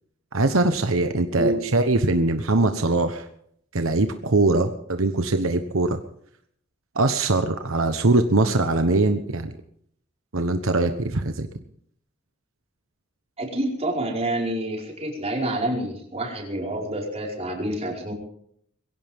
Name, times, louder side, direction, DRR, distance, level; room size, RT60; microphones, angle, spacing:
voice 1, 0.3-3.2 3.7-6.0 6.9-9.5 10.3-11.5, right 2 dB, 80° right, 7 dB, 1.2 m, -22 dB
voice 2, 13.4-18.1, right 1 dB, 30° right, -1 dB, 5.1 m, -28 dB
22.5 x 16.5 x 3.7 m, 0.67 s
head